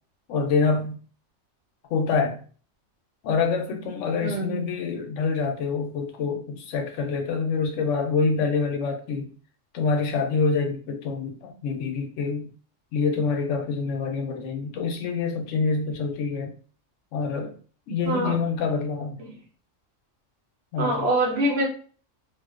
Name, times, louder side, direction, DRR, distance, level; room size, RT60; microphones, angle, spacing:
voice 1, 0.3-1.0 1.9-2.4 3.2-9.3 9.7-12.5 12.9-16.5 17.1-17.5 17.9-19.2 20.7-21.1, left 4 dB, 75° left, 4 dB, 0.9 m, -26 dB
voice 2, 4.2-4.6 18.1-18.4 19.2-19.3 20.8-21.7, right 1 dB, 60° right, 0 dB, 0.8 m, -24 dB
2.5 x 2.2 x 2.4 m, 0.41 s
omnidirectional pair, 1.3 m